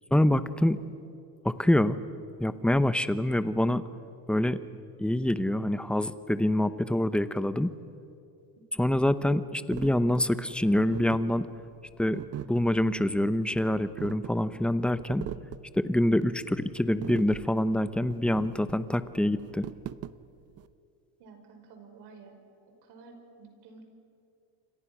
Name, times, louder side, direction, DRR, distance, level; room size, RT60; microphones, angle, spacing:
voice 1, 0.1-0.8 1.4-2.0 2.4-3.8 4.3-4.6 5.0-7.7 8.8-11.4 12.0-15.3 15.7-19.7, left 1 dB, ahead, 13 dB, 0.7 m, -26 dB
sound 1, 9.7-20.7, right 11 dB, 35° right, 0.7 m, -41 dB
voice 2, 21.2-22.4 22.8-23.8, right 4 dB, 60° right, 4 dB, 5.6 m, -51 dB
28.5 x 25.5 x 6.1 m, 2.6 s
cardioid pair, 125°, 44 cm